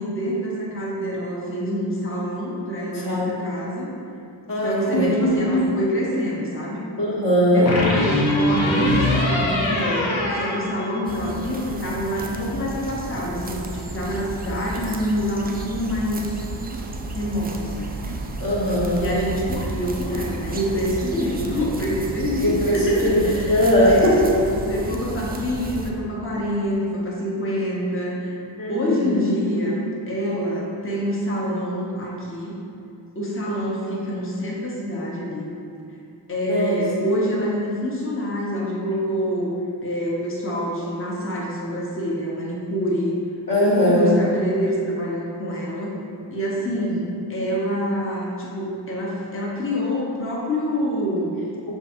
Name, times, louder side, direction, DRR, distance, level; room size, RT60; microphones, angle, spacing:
voice 1, 0.0-3.9 4.6-6.8 7.5-16.3 17.1-17.9 18.9-24.2 24.7-28.4 28.7-29.8 30.1-32.6 33.1-35.5 36.3-43.1 43.6-45.9 46.3-51.3, equal, 30° left, -5 dB, 0.9 m, -26 dB
voice 2, 2.9-3.2 4.5-5.1 7.0-7.7 18.4-19.0 22.4-22.8 23.0-24.3 28.6-29.2 36.4-36.8 43.5-44.2, equal, 45° left, -5 dB, 1.2 m, -20 dB
sound 1, 4.9-5.8 7.7-11.4, left 1 dB, 80° left, 0.8 m, -23 dB
sound 2, 11.1-25.9, right 2 dB, 20° right, 0.4 m, -32 dB
6.2 x 2.7 x 2.6 m, 2.5 s
cardioid pair, 40°, 46 cm